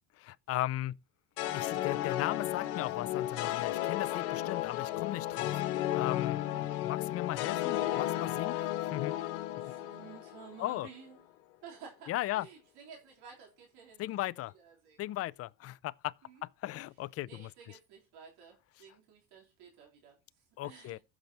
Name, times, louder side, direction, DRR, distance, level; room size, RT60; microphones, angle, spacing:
voice 1, 0.2-1.0 1.5-5.6 5.9-9.1 10.6-10.9 12.1-12.5 14.0-14.5 15.0-16.1 16.4-17.5 20.6-21.0, left 15 dB, 35° left, 0.4 m, -37 dB
sound 1, 1.4-10.7, left 14 dB, 70° left, 1.4 m, -33 dB
voice 2, 9.6-11.3 11.6-14.3 14.5-15.0 16.2-16.5 17.2-21.0, right 6 dB, 60° right, 3.5 m, -53 dB
15.5 x 6.1 x 2.9 m
supercardioid pair, 85°, 43 cm